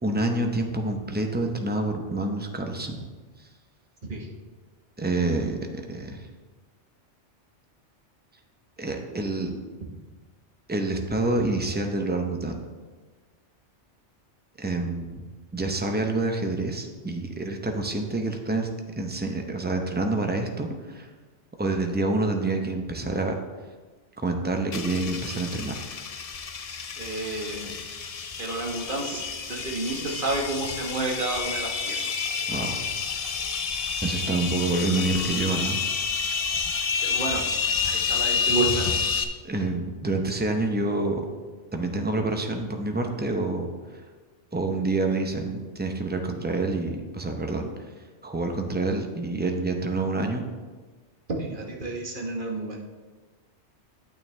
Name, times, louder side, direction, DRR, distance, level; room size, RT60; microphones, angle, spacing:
voice 1, 0.0-3.0 3.4-3.5 5.0-5.6 5.9-6.3 8.8-9.5 10.7-12.6 14.6-15.2 15.5-18.7 19.0-21.1 21.6-23.3 24.2-25.8 32.5-32.9 34.0-35.8 39.4-41.2 41.7-44.0 44.5-47.7 48.2-50.4, right 2 dB, 10° right, 4 dB, 0.6 m, -27 dB
sound 1, 24.7-39.2, left 6 dB, 45° left, 0.5 m, -29 dB
voice 2, 27.0-27.7 28.4-29.2 29.5-32.0 37.0-37.5 37.8-38.9 51.4-52.8, right 2 dB, 45° right, 0 dB, 1.4 m, -30 dB
9.1 x 8.9 x 3.3 m, 1.4 s
omnidirectional pair, 1.2 m